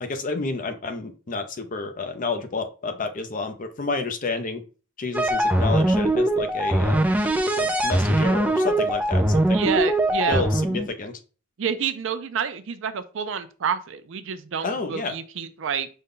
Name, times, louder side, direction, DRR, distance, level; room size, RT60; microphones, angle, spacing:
voice 1, 0.0-4.6 5.0-7.1 7.6-9.6 10.3-11.2 14.6-15.1, left 3 dB, 40° left, 7 dB, 0.6 m, -30 dB
sound 1, 5.1-10.9, right 1 dB, 10° right, 0.4 m, -21 dB
voice 2, 9.5-10.4 11.6-15.9, right 7 dB, 65° right, 11 dB, 0.5 m, -28 dB
5.2 x 2.2 x 3.7 m, 0.35 s
head